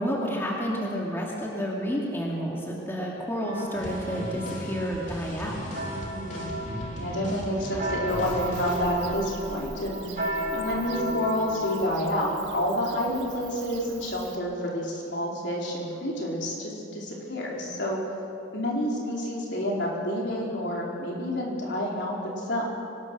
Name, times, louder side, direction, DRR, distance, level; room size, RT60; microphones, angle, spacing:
voice 1, 0.0-5.6, equal, 15° left, -3 dB, 2.5 m, -30 dB
sound 1, 3.4-11.9, equal, 45° right, 5.5 m, -35 dB
sound 2, 3.7-8.9, equal, 40° left, 3.7 m, -37 dB
voice 2, 6.1-6.5 7.0-10.2 10.5-18.0 18.5-22.6, equal, 60° left, -3 dB, 4.7 m, -29 dB
Bird / Cricket, 8.1-14.4, right 4 dB, 70° right, 1.5 m, -44 dB
24.5 x 19.5 x 6.5 m, 2.6 s
head